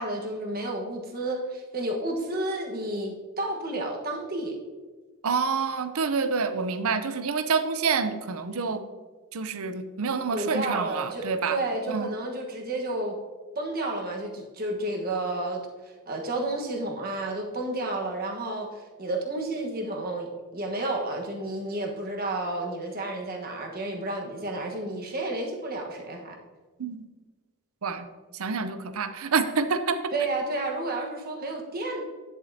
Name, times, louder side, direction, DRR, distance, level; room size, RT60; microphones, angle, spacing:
voice 1, 0.0-4.6 10.3-13.2 13.6-15.6 16.1-18.7 19.0-26.3 30.1-32.0, right 2 dB, 40° right, 1 dB, 1.3 m, -31 dB
voice 2, 5.2-8.8 9.3-11.6 11.9-12.1 26.8-27.0 27.8-28.1 28.3-30.1, right 5 dB, 70° right, 11 dB, 0.6 m, -27 dB
10.5 x 7.6 x 2.8 m, 1.4 s
head